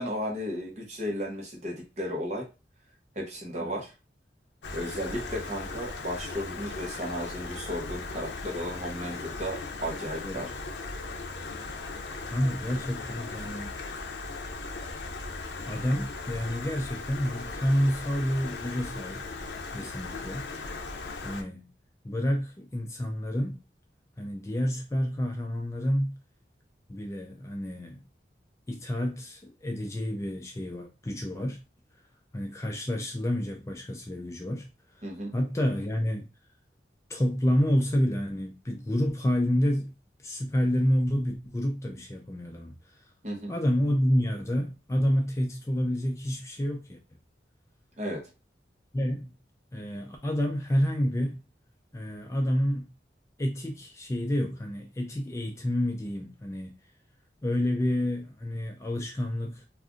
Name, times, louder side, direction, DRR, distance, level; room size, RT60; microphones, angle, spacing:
voice 1, 0.0-2.4 3.2-3.9 4.7-10.5 35.0-35.3 43.2-43.5 48.0-48.2, equal, 40° right, 0.9 m, -34 dB
Stream, 4.6-21.4, left 3 dB, 75° left, 0.5 m, -38 dB
voice 2, 12.3-13.7 15.7-19.3 19.7-20.5 21.2-21.7 22.0-23.6 24.2-26.2 26.9-28.0 28.7-31.6 32.3-34.7 35.0-35.1 35.3-36.3 37.1-39.9 40.2-43.1 43.5-47.0 48.9-49.3 49.7-51.4 51.9-52.9 53.4-56.7 57.4-59.7, equal, 15° left, 0.3 m, -29 dB
2.5 x 2.3 x 3.6 m
head